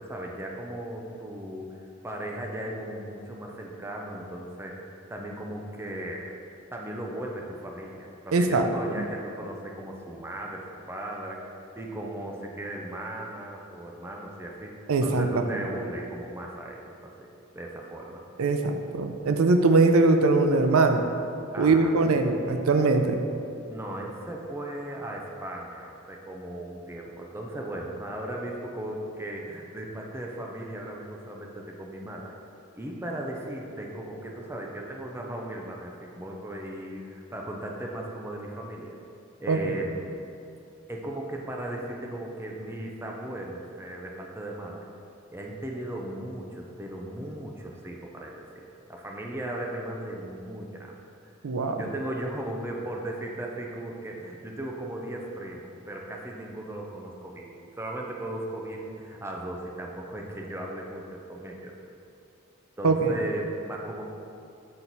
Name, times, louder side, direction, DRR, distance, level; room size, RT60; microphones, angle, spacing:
voice 1, 0.0-1.8 2.0-6.3 6.7-17.3 17.5-18.2 21.5-21.9 22.4-22.6 23.7-32.3 32.8-39.0 39.4-40.0 40.9-44.8 45.3-50.9 51.8-61.7 62.8-64.1, right 1 dB, 10° right, -1 dB, 0.6 m, -37 dB
voice 2, 8.3-8.7 9.0-9.1 14.9-15.3 18.4-21.1 21.6-23.2 39.5-39.7 51.4-51.8 62.8-63.1, right 3 dB, 90° right, 6 dB, 0.5 m, -21 dB
7.6 x 4.4 x 4.0 m, 2.6 s
head